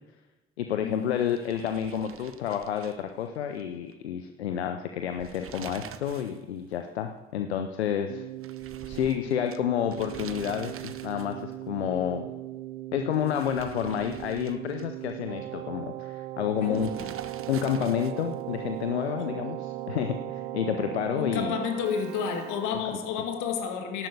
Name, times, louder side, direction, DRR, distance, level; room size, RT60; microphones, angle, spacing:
voice 1, 0.6-8.3 8.9-12.3 12.9-16.9 17.5-21.5, left 9 dB, 90° left, 7 dB, 0.5 m, -30 dB
sound 1, 1.1-3.6 3.9-4.0 5.0-6.4 6.7-6.8 8.4-11.5 13.1-15.1 16.7-18.4, right 8 dB, 45° right, 0.9 m, -46 dB
Keyboard (musical), 8.1-23.1, right 14 dB, 70° right, 0.8 m, -38 dB
voice 2, 16.6-17.1 19.2-19.5 21.1-24.1, left 7 dB, 70° left, 4 dB, 1.9 m, -31 dB
11.5 x 8.4 x 6.8 m, 1.2 s
hypercardioid pair, 45°, 31 cm